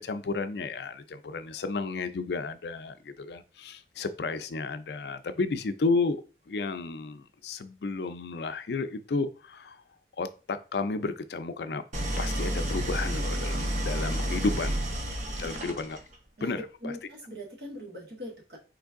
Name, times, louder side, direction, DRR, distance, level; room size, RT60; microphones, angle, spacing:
voice 1, 0.0-6.2 6.5-9.8 10.2-11.8 12.2-14.8 15.4-16.0 16.4-16.9, left 3 dB, 70° left, 0.4 m, -32 dB
Idling, 11.9-16.1, right 1 dB, 40° right, 0.7 m, -30 dB
voice 2, 14.1-14.7 15.2-15.6 16.4-18.6, equal, 65° right, 1.8 m, -42 dB
4.5 x 3.3 x 3.5 m
head